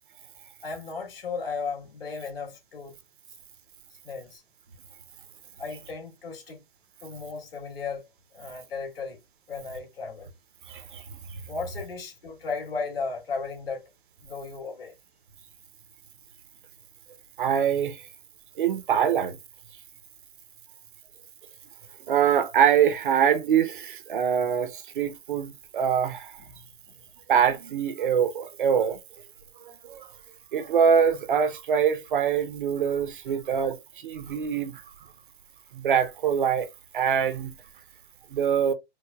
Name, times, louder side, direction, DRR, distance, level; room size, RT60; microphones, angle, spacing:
voice 1, 0.6-3.0 4.0-4.4 5.6-6.6 7.0-8.1 8.3-9.2 9.5-10.3 11.5-13.9 14.2-14.9 26.4-27.0 33.3-33.4, left 4 dB, 60° left, 2.3 m, -35 dB
voice 2, 10.7-11.0 17.4-18.0 18.6-19.4 22.1-26.4 27.3-29.0 29.6-30.1 30.5-33.8 34.0-34.8 35.7-36.7 36.9-37.5 38.3-38.7, right 8 dB, 50° right, 0.6 m, -24 dB
4.6 x 2.2 x 2.2 m
hypercardioid pair, 155°, 32 cm